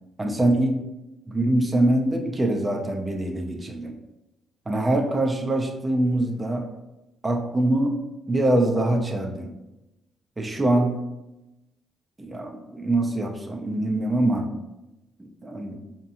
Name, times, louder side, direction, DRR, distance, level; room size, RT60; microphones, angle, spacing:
voice 1, 0.2-0.8 1.3-3.9 4.7-6.7 7.2-9.5 10.4-11.1 12.2-14.5 15.2-15.8, right 1 dB, 20° right, 3 dB, 0.6 m, -24 dB
4.4 x 2.9 x 2.6 m, 0.97 s
cardioid pair, 90°, 0 cm